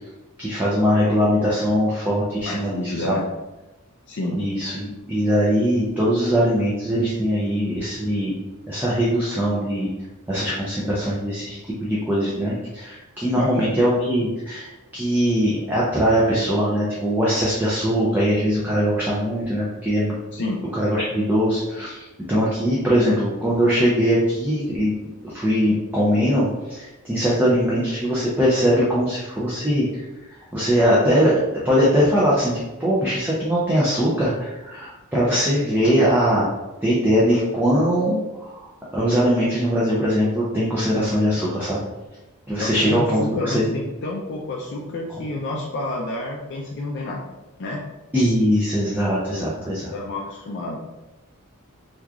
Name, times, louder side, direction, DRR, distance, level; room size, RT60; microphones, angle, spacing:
voice 1, 0.4-3.2 4.3-8.3 8.7-9.9 10.3-20.1 20.7-24.9 25.2-30.0 30.5-31.4 31.6-36.5 36.8-38.5 38.9-41.8 42.5-43.7 48.1-49.9, equal, 10° right, -7 dB, 0.5 m, -21 dB
voice 2, 2.4-3.2 4.1-4.4 13.4-13.7 20.3-20.6 42.6-47.2 47.6-47.8 49.4-49.5 49.9-50.8, left 2 dB, 55° left, -2 dB, 0.4 m, -29 dB
3.0 x 2.4 x 3.5 m, 1.0 s
head